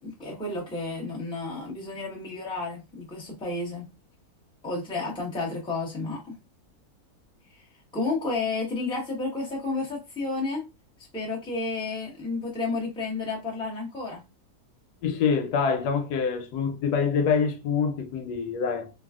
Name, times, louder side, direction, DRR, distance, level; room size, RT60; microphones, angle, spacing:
voice 1, 0.0-3.9 4.6-6.3 7.5-7.6 7.9-10.6 11.1-14.2, left 3 dB, 5° left, 0.8 m, -31 dB
voice 2, 15.0-18.9, left 6 dB, 90° left, 1.2 m, -25 dB
3.2 x 2.4 x 2.3 m
omnidirectional pair, 1.7 m